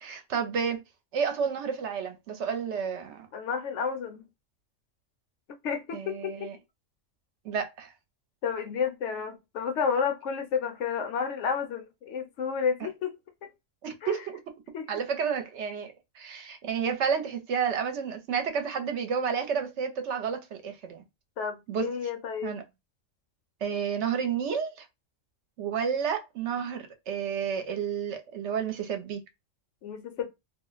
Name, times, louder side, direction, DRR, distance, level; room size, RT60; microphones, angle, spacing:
voice 1, 0.0-0.8 1.1-3.3 5.9-6.6 7.4-7.9 13.8-14.4 14.9-21.0 21.7-21.8 22.4-22.6 23.6-24.9 25.6-29.2, right 7 dB, 70° right, 0.9 m, -31 dB
voice 2, 3.3-4.3 5.5-6.5 8.4-13.5 14.0-14.1 14.7-14.9 21.4-22.6 29.8-30.3, left 6 dB, 70° left, 0.9 m, -31 dB
2.4 x 2.0 x 3.8 m
omnidirectional pair, 1.3 m